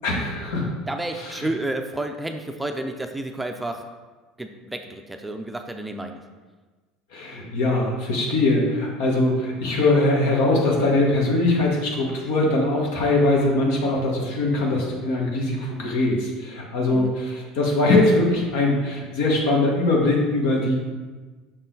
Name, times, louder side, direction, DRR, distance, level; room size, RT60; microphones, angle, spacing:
voice 1, 0.0-0.7 1.2-1.5 7.1-20.7, left 2 dB, 80° left, -1 dB, 1.6 m, -21 dB
voice 2, 0.9-3.9 4.4-6.2 16.9-17.1, right 1 dB, 5° right, 5 dB, 0.4 m, -31 dB
6.4 x 4.2 x 3.9 m, 1.3 s
supercardioid pair, 115°, 0 cm